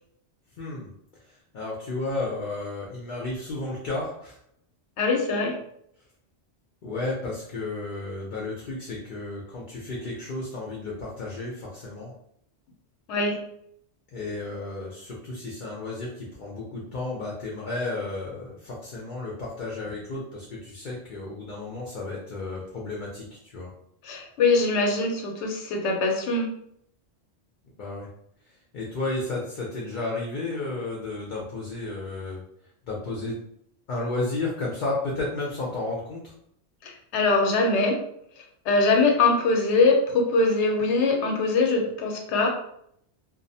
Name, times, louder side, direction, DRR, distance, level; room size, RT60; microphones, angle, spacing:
voice 1, 0.6-0.9 1.5-4.4 6.8-12.1 14.1-23.7 27.8-28.1 28.7-32.4 32.9-33.4 33.9-36.3, left 2 dB, 55° left, -3 dB, 0.6 m, -32 dB
voice 2, 5.0-5.6 13.1-13.4 24.0-26.5 36.8-38.0 38.7-42.5, left 3 dB, 80° left, 2 dB, 0.9 m, -22 dB
2.5 x 2.0 x 2.6 m, 0.71 s
omnidirectional pair, 1.2 m